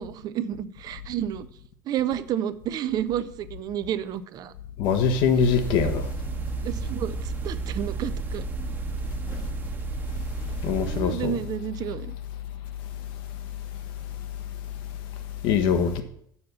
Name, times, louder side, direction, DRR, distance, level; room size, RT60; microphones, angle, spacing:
voice 1, 0.0-1.5 1.9-4.5 5.7-6.0 6.6-8.4 10.9-12.1, right 10 dB, 40° right, 0.7 m, -31 dB
voice 2, 4.8-6.1 10.6-11.4 15.4-16.0, left 6 dB, 50° left, 1.2 m, -22 dB
sound 1, 5.4-11.0, right 6 dB, 20° right, 1.2 m, -32 dB
7.1 x 6.7 x 6.8 m
figure-of-eight pair, 70°, 10 cm